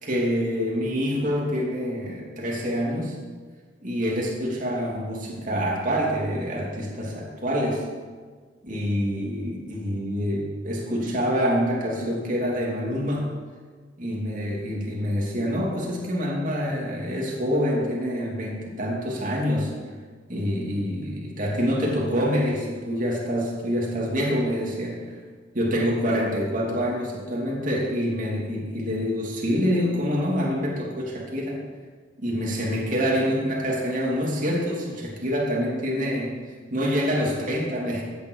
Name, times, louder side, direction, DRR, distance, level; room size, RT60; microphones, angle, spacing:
voice 1, 0.0-3.2 3.8-7.8 8.6-13.4 14.0-19.7 20.3-25.1 25.5-31.7 32.2-36.3 36.7-38.0, equal, 45° right, -3 dB, 3.0 m, -26 dB
16.0 x 10.0 x 4.9 m, 1.5 s
head